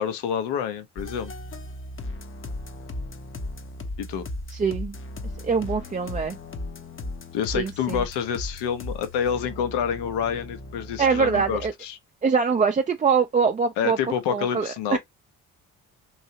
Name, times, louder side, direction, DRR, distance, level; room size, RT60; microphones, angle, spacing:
voice 1, 0.0-1.3 4.0-4.3 7.3-12.0 13.8-15.0, left 8 dB, 70° left, 0.8 m, -28 dB
sound 1, 1.0-11.7, left 2 dB, 30° left, 0.7 m, -36 dB
voice 2, 4.5-5.0 5.4-6.4 7.5-8.0 11.0-11.7 12.2-14.0 14.3-15.0, right 5 dB, 20° right, 0.4 m, -23 dB
3.2 x 2.7 x 2.7 m
hypercardioid pair, 45°, 43 cm